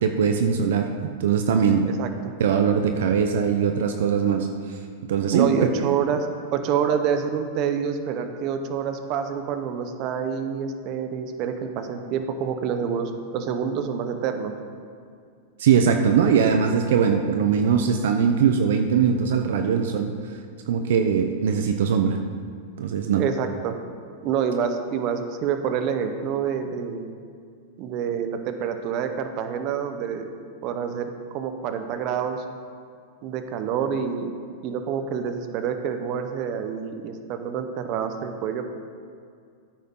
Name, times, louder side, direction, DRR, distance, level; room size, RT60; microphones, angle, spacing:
voice 1, 0.0-1.9 2.4-4.5 5.1-5.5 15.6-20.1 20.7-22.2 22.8-23.2, right 7 dB, 75° right, 6 dB, 0.8 m, -21 dB
voice 2, 5.3-14.6 23.2-23.8 24.2-27.1 27.8-30.3 30.6-32.4 33.2-34.3 34.6-38.7, right 7 dB, 45° right, 7 dB, 1.1 m, -27 dB
13.5 x 9.3 x 3.9 m, 2.2 s
hypercardioid pair, 125°, 0 cm